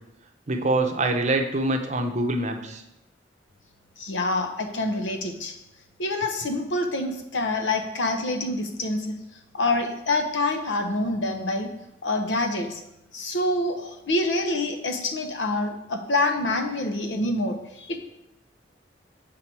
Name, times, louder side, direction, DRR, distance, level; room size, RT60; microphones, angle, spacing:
voice 1, 0.5-2.8, right 2 dB, 40° right, 5 dB, 0.6 m, -25 dB
voice 2, 4.0-5.6 6.0-9.1 9.5-11.7 12.0-12.8 13.1-18.0, left 2 dB, 80° left, 6 dB, 0.8 m, -26 dB
7.5 x 3.8 x 4.5 m, 0.87 s
head